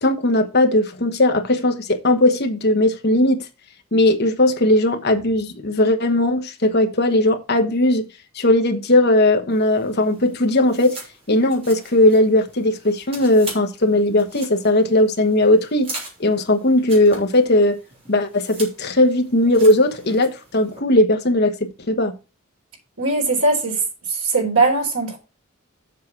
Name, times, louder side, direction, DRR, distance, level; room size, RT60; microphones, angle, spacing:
voice 1, 0.0-3.4 3.9-8.0 8.3-11.0 11.3-15.9 16.2-17.8 18.1-22.1, left 1 dB, 50° left, 1.2 m, -18 dB
sound 1, 9.5-20.8, right 2 dB, 30° right, 3.5 m, -40 dB
voice 2, 23.0-23.8 24.1-25.2, right 3 dB, 80° right, 4.1 m, -20 dB
7.5 x 6.0 x 5.9 m
head